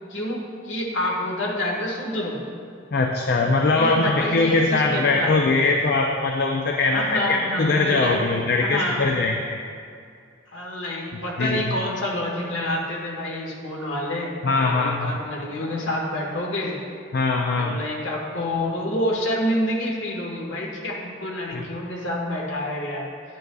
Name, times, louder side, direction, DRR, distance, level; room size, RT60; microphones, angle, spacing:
voice 1, 0.1-2.4 3.7-5.4 6.8-8.2 8.6-9.1 10.5-14.3 14.6-16.8 17.6-23.1, left 1 dB, 65° left, -1 dB, 1.4 m, -27 dB
voice 2, 2.9-9.6 11.4-11.8 14.4-15.1 17.1-17.8 21.5-21.6, left 3 dB, 50° left, 2 dB, 0.4 m, -21 dB
10.5 x 9.0 x 2.3 m, 2.4 s
head